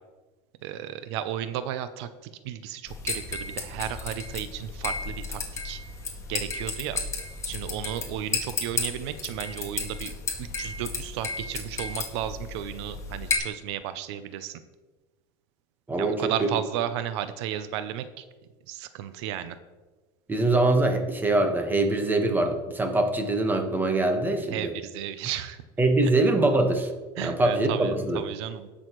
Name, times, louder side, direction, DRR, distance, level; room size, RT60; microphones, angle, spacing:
voice 1, 0.6-5.8 6.3-7.0 7.5-10.1 10.4-14.6 16.0-18.2 18.7-19.6 24.5-25.6 26.0-26.1 27.2-28.7, right 11 dB, 85° right, 12 dB, 0.6 m, -34 dB
fluorescent lamp flickering, 2.9-13.4, left 4 dB, 20° left, 1.8 m, -33 dB
voice 2, 15.9-16.3 20.3-24.7 25.8-26.9 27.2-28.2, right 2 dB, 15° right, 4 dB, 1.3 m, -23 dB
18.0 x 6.3 x 3.1 m, 1.2 s
supercardioid pair, 135°, 14 cm